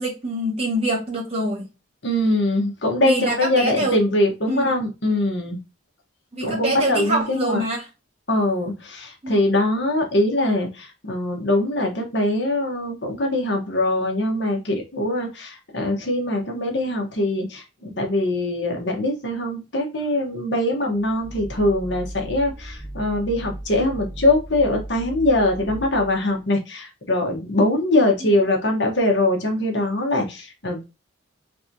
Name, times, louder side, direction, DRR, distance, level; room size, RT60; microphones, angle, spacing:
voice 1, 0.0-1.7 3.0-4.0 4.5-4.7 6.3-7.9 9.2-9.4 28.2-28.3, right 1 dB, 30° right, 1.4 m, -25 dB
voice 2, 2.0-5.6 6.4-7.6 8.3-30.8, left 1 dB, 55° left, 1.1 m, -22 dB
sound 1, 20.9-26.4, right 1 dB, 5° right, 0.4 m, -36 dB
3.5 x 3.0 x 2.6 m
head